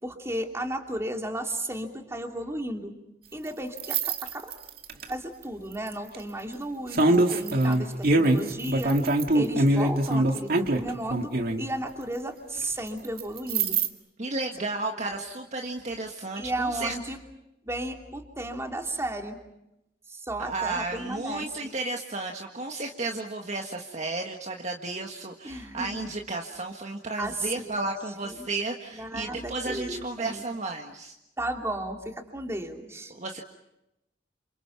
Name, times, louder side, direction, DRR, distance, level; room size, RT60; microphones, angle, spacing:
voice 1, 0.0-2.9 3.3-4.5 5.1-8.9 9.3-13.8 15.1-15.2 16.4-17.2 17.6-19.4 20.1-21.7 25.4-26.1 27.2-27.7 28.2-28.5 28.9-30.4 31.4-33.1, right 1 dB, 15° right, 3 dB, 2.9 m, -34 dB
sound 1, 3.8-5.0 5.9-6.1 6.9-11.6 13.2-13.9, right 2 dB, 60° right, 2.0 m, -23 dB
voice 2, 14.2-16.9 20.4-31.1 33.1-33.4, right 3 dB, 40° right, 2 dB, 1.7 m, -33 dB
29.5 x 28.0 x 5.9 m, 0.87 s
head